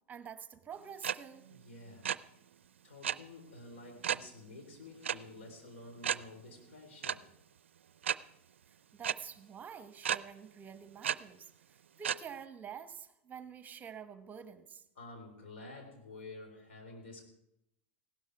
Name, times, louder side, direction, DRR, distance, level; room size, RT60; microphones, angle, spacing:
voice 1, 0.1-1.5 8.7-14.8, right 7 dB, 25° right, 11 dB, 1.1 m, -48 dB
sound 1, 1.0-1.1 1.4-1.6 1.9-2.2 3.0-3.1 4.0-4.2 5.0-5.1 5.5-5.6 6.0-6.2 7.0-7.1 8.0-8.1 9.0-9.1 10.0-10.2 11.0-11.1 12.0-12.2, right 9 dB, 85° right, 0.4 m, -32 dB
voice 2, 1.5-2.1 2.8-7.3 15.0-17.2, left 2 dB, 80° left, 3 dB, 3.9 m, -50 dB
16.5 x 12.5 x 4.8 m, 0.83 s
hypercardioid pair, 95°, 6 cm